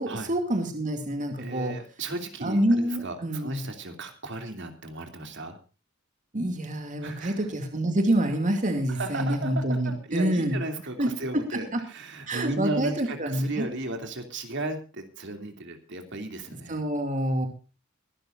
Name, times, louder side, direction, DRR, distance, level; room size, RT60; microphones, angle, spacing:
voice 1, 0.0-1.7 2.4-3.6 6.3-10.6 11.0-11.1 11.5-11.8 12.3-13.7 16.7-17.5, right 1 dB, 40° right, 5 dB, 2.5 m, -27 dB
voice 2, 1.4-5.6 7.0-7.5 8.9-16.8, right 2 dB, 60° right, 6 dB, 2.8 m, -35 dB
23.5 x 12.5 x 2.6 m, 0.33 s
head